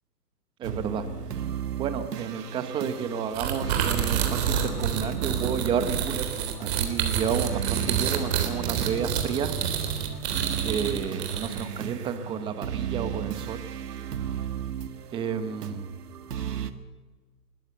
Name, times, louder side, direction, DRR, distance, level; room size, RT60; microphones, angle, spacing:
voice 1, 0.6-1.1 1.8-6.2 6.6-9.5 10.6-13.6 15.1-15.9, right 7 dB, 10° right, 11 dB, 0.9 m, -31 dB
sound 1, 0.6-16.7, right 8 dB, 70° right, 1.9 m, -34 dB
sound 2, 3.3-11.8, right 8 dB, 40° right, 3.5 m, -28 dB
21.5 x 21.0 x 8.1 m, 1.4 s
hypercardioid pair, 150°, 50 cm